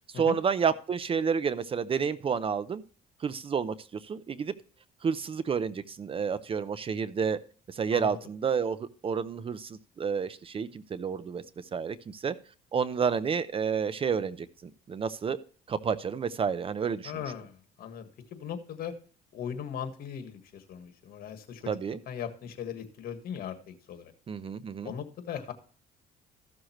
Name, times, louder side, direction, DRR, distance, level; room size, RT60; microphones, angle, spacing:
voice 1, 0.1-2.8 3.2-4.5 5.0-7.4 7.7-11.4 11.7-12.3 12.7-15.4 15.7-17.2 21.7-22.0 24.3-24.9, right 6 dB, 35° right, 15 dB, 0.6 m, -30 dB
voice 2, 17.0-18.9 19.3-21.8 22.1-24.1 24.8-25.5, left 8 dB, 65° left, 9 dB, 1.6 m, -39 dB
14.5 x 6.4 x 3.0 m, 0.41 s
cardioid pair, 110°, 17 cm